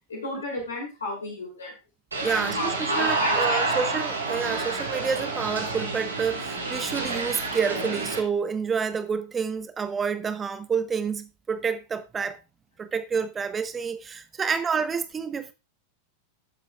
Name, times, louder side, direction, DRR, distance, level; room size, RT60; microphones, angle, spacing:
voice 1, 0.1-1.7 2.2-3.7, left 2 dB, 70° left, 2.8 m, -33 dB
sound 1, 2.1-8.2, right 3 dB, 80° right, 3.1 m, -28 dB
voice 2, 2.2-12.4 12.8-15.5, right 6 dB, 20° right, 1.1 m, -29 dB
15.0 x 7.6 x 2.3 m
figure-of-eight pair, 90°, 0 cm